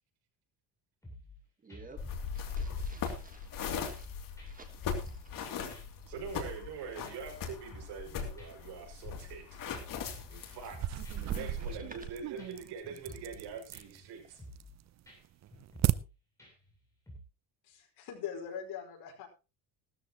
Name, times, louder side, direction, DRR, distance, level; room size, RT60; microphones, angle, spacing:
sound 1, 1.0-1.4 1.7-2.4 2.7-4.1 4.4-4.5 4.8-5.4 5.7-6.7 7.0-7.2 7.5-8.1 8.4-9.4 9.7-11.4 11.7-12.1 12.4-12.5 12.8-13.4 13.7-14.0 14.4-14.8 15.1-15.2 15.5-16.1 16.4-16.7 17.1-17.2, left 1 dB, 10° left, 7.3 m, -51 dB
voice 1, 1.6-4.1 4.4-5.3 11.2-12.0, right 4 dB, 20° right, 1.5 m, -52 dB
sound 2, 2.0-11.7, left 6 dB, 55° left, 2.8 m, -40 dB
voice 2, 6.1-9.6 10.3-14.4, right 6 dB, 75° right, 5.7 m, -44 dB
sound 3, 10.7-14.0 14.4-14.9 15.2-15.9, right 13 dB, 45° right, 0.6 m, -35 dB
voice 3, 17.6-19.3, left 8 dB, 70° left, 5.0 m, -41 dB
17.0 x 13.0 x 3.0 m
cardioid pair, 155°, 40 cm